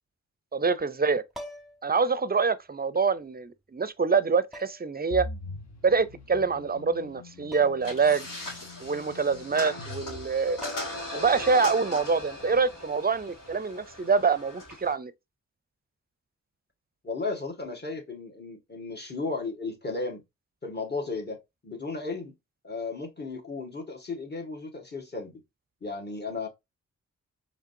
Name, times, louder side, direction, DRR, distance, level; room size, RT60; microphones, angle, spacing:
voice 1, 0.5-1.2 1.8-5.3 5.8-8.3 8.8-10.6 11.1-15.1, right 5 dB, 30° right, 0.5 m, -25 dB
sound 1, 1.3-1.9 3.2-3.3 4.5-5.0 7.5-7.9 8.3-8.4 10.2-10.3 10.6-11.2 13.2-13.4, left 1 dB, ahead, 1.0 m, -44 dB
sound 2, 5.1-11.1, left 2 dB, 60° left, 1.2 m, -43 dB
sound 3, 7.8-14.9, left 1 dB, 85° left, 2.2 m, -39 dB
voice 2, 17.0-20.2 20.6-21.4 21.6-22.3 22.6-25.4 25.8-26.5, left 3 dB, 35° left, 1.8 m, -34 dB
4.9 x 3.3 x 2.6 m
cardioid pair, 55°, 31 cm